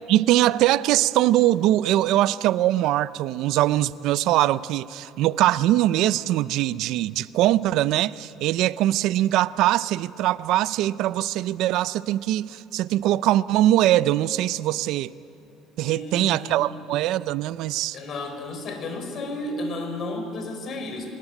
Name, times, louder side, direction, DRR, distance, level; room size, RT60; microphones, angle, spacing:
voice 1, 0.1-15.1 15.8-18.0, right 14 dB, 70° right, 0.5 m, -22 dB
voice 2, 15.8-16.6 17.9-21.1, left 2 dB, 45° left, 4.5 m, -32 dB
23.5 x 20.0 x 9.0 m
cardioid pair, 130°, 0 cm